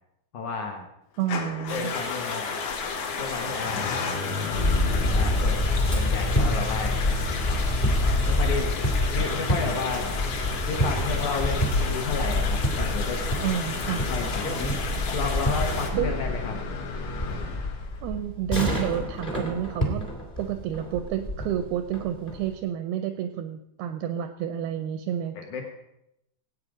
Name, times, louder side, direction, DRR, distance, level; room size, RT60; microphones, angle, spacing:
voice 1, 0.3-0.9 1.7-2.5 3.1-3.9 5.1-5.7 5.9-7.0 8.2-8.8 9.1-10.1 10.6-13.2 14.1-14.5 15.1-16.6 25.3-25.7, left 4 dB, 70° left, 2 dB, 1.8 m, -32 dB
Motor vehicle (road) / Engine starting / Idling, 1.2-18.2, left 4 dB, 90° left, 3.8 m, -34 dB
voice 2, 1.2-1.9 13.4-14.1 15.9-16.2 18.0-20.1 20.4-25.4, right 10 dB, 85° right, 8 dB, 2.3 m, -29 dB
sound 1, 1.7-15.9, left 4 dB, 55° left, 1.8 m, -33 dB
sound 2, 4.5-22.5, left 1 dB, 30° left, 0.9 m, -27 dB
18.0 x 8.5 x 5.0 m, 0.83 s
omnidirectional pair, 5.2 m